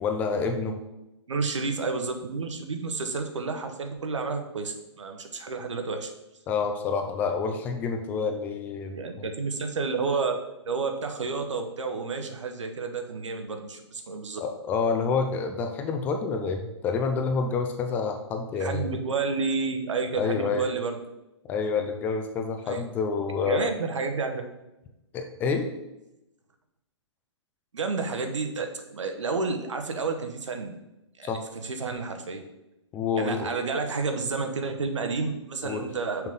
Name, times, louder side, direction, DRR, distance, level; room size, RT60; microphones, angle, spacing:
voice 1, 0.0-0.8 6.5-9.3 14.4-18.9 20.2-20.7 21.5-23.7 25.1-25.7 31.2-31.4 32.9-33.5 35.6-35.9, left 5 dB, 10° left, 5 dB, 0.3 m, -28 dB
voice 2, 1.3-6.1 8.9-10.4 10.6-14.4 18.6-21.0 22.6-22.9 23.4-24.4 27.7-30.8 31.2-32.4 33.2-36.3, right 4 dB, 80° right, 6 dB, 1.1 m, -30 dB
6.1 x 3.6 x 5.3 m, 0.93 s
hypercardioid pair, 145°, 15 cm